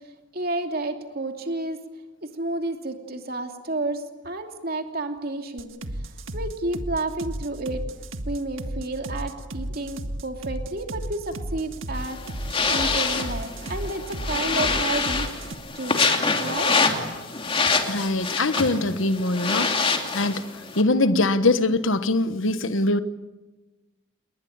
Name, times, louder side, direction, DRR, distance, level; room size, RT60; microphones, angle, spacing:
voice 1, 0.3-1.8 2.2-5.7 6.3-7.8 8.3-15.3 15.7-16.0 16.4-16.7, right 2 dB, 45° right, 2.8 m, -31 dB
sound 1, 5.6-15.5, right 1 dB, 70° right, 1.7 m, -33 dB
sound 2, 12.0-20.8, left 4 dB, 25° left, 2.7 m, -26 dB
voice 2, 17.9-20.5 20.8-23.0, left 2 dB, 70° left, 1.3 m, -23 dB
29.5 x 20.5 x 8.9 m
head